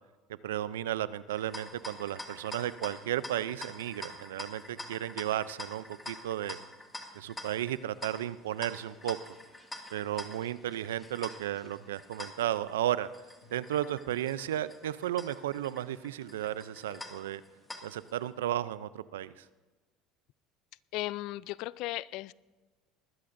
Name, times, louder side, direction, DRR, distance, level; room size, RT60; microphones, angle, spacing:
voice 1, 0.3-6.6 7.1-9.2 9.9-13.1 13.5-17.4 17.8-19.4, right 12 dB, 90° right, 17 dB, 0.4 m, -34 dB
sound 1, 1.3-18.2, left 2 dB, 15° left, 2.0 m, -46 dB
sound 2, 2.9-17.1, left 1 dB, 85° left, 1.9 m, -62 dB
voice 2, 20.9-22.3, left 18 dB, 70° left, 21 dB, 0.3 m, -36 dB
20.5 x 14.0 x 2.6 m, 1.3 s
hypercardioid pair, 80°, 0 cm